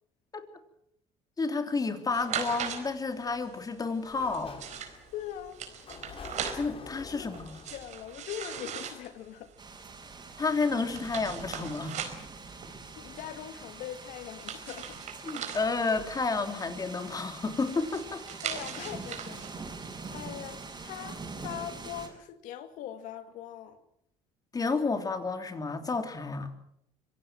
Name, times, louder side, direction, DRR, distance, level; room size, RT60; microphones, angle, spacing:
voice 1, 1.4-4.6 6.5-7.6 10.4-12.0 15.2-18.3 24.5-26.5, left 4 dB, 25° left, 3.4 m, -31 dB
sound 1, 2.1-21.1, right 8 dB, 60° right, 4.5 m, -41 dB
Sliding door, 4.0-9.7, left 6 dB, 45° left, 3.2 m, -49 dB
voice 2, 5.1-5.6 7.1-7.4 7.7-9.5 13.0-15.0 18.4-23.8, left 10 dB, 75° left, 2.4 m, -41 dB
sound 2, 9.6-22.1, right 4 dB, 30° right, 6.7 m, -44 dB
25.5 x 17.5 x 7.5 m
supercardioid pair, 85°, 14 cm